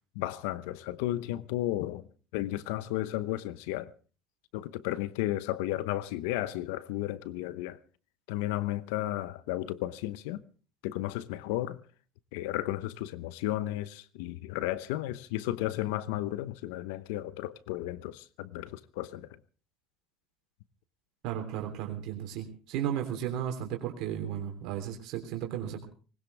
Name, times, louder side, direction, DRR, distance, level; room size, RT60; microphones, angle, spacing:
voice 1, 0.1-2.1 2.3-3.9 4.5-7.8 8.3-10.4 10.8-11.8 12.3-19.3, left 15 dB, 80° left, 0.9 m, -33 dB
voice 2, 21.2-25.8, right 10 dB, 70° right, 3.3 m, -34 dB
20.0 x 18.5 x 3.4 m
supercardioid pair, 85°, 0 cm